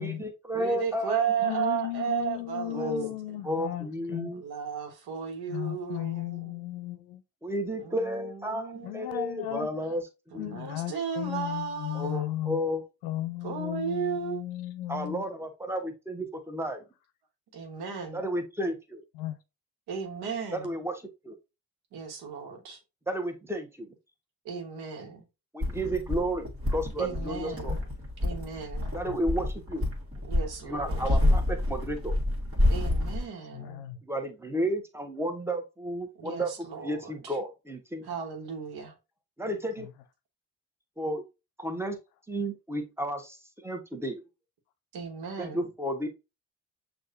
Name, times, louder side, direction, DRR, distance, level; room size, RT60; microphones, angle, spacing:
voice 1, 0.0-1.2 2.7-3.1 3.4-4.4 7.4-10.0 10.3-10.5 11.9-12.8 14.9-16.8 18.1-19.0 20.5-21.4 23.1-23.9 25.5-27.8 28.9-29.9 30.6-32.1 34.0-38.0 39.4-39.9 41.0-41.2 41.6-42.0 42.3-44.2 45.4-46.1, right 1 dB, 5° right, 1.1 m, -32 dB
voice 2, 0.5-2.9 4.3-6.4 7.8-8.9 10.3-12.3 13.4-14.4 17.5-18.2 19.9-20.7 21.9-22.8 24.4-25.2 27.0-27.8 28.2-29.0 30.2-31.0 32.7-33.8 36.2-37.0 38.0-38.9 44.9-45.6, right 7 dB, 70° right, 1.2 m, -34 dB
voice 3, 1.4-4.3 5.5-7.2 8.8-9.7 10.4-12.6 13.0-15.2 19.1-19.4 27.7-27.8 29.1-29.2 31.2-31.4 33.5-34.0 39.8-39.9, left 15 dB, 85° left, 0.5 m, -35 dB
sound 1, 25.6-33.3, left 1 dB, 35° right, 1.5 m, -28 dB
6.4 x 2.5 x 2.5 m
hypercardioid pair, 40°, 39 cm